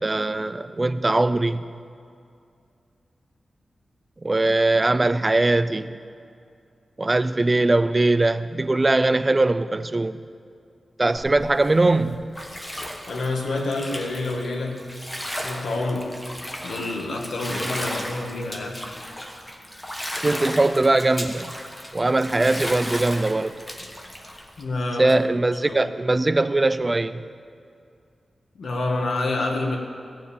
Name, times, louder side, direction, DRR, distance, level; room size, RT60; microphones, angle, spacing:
voice 1, 0.0-1.6 4.2-5.9 7.0-10.2 11.0-12.3 20.2-21.6 21.9-23.6 25.0-27.2, right 2 dB, 20° right, 12 dB, 0.4 m, -21 dB
Bathtub (filling or washing), 11.2-24.6, equal, 10° left, 1.2 m, -35 dB
voice 2, 13.1-14.8 15.4-16.2 16.6-18.8 24.6-25.1 25.7-25.8 28.6-29.8, left 2 dB, 80° left, 1 dB, 1.9 m, -28 dB
17.0 x 7.1 x 8.8 m, 2.4 s
wide cardioid pair, 170°, 0 cm